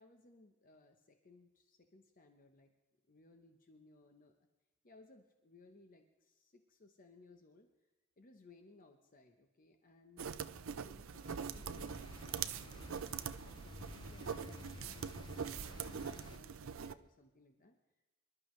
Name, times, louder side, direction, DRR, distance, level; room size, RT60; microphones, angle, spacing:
voice 1, 0.0-2.7 3.0-4.3 4.8-7.7 8.2-13.0 13.5-17.8, left 2 dB, 40° left, 4 dB, 1.0 m, -63 dB
sound 1, 10.2-16.9, right 7 dB, 65° right, 0.5 m, -43 dB
sound 2, 11.2-16.4, left 2 dB, 20° left, 0.4 m, -53 dB
25.5 x 12.0 x 3.2 m, 1.1 s
head